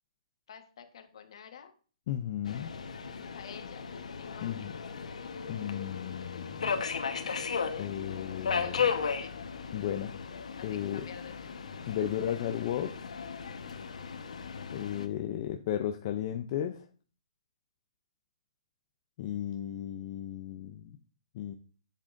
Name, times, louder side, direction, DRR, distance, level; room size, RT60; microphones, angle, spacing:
voice 1, 0.5-1.7 2.7-3.9 4.2-4.8 8.5-9.4 10.6-11.6, left 8 dB, 55° left, 7 dB, 1.3 m, -49 dB
voice 2, 2.1-2.7 4.4-4.7 5.5-6.8 7.8-8.9 9.7-10.1 10.6-11.1 11.9-12.9 14.7-16.9 19.2-21.0 21.3-21.5, left 10 dB, 30° left, 5 dB, 0.5 m, -34 dB
Subway metro underground, 2.4-15.1, left 6 dB, 90° left, 1.1 m, -36 dB
11.0 x 7.6 x 2.6 m, 0.40 s
hypercardioid pair, 170°, 4 cm